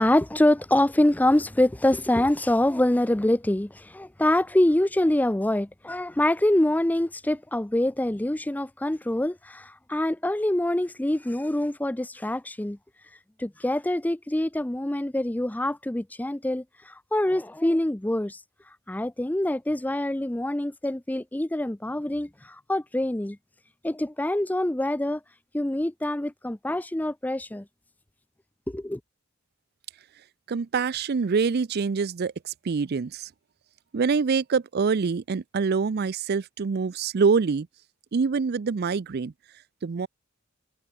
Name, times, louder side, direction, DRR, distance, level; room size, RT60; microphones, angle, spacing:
voice 1, 0.0-12.8 13.4-18.4 18.9-23.4 23.8-25.2 25.5-27.6 28.7-29.0, left 1 dB, 10° left, 0.5 m, -25 dB
voice 2, 30.5-32.3 32.7-33.2 33.9-37.7 38.1-39.3 39.8-40.1, right 5 dB, 50° right, 0.5 m, -25 dB
head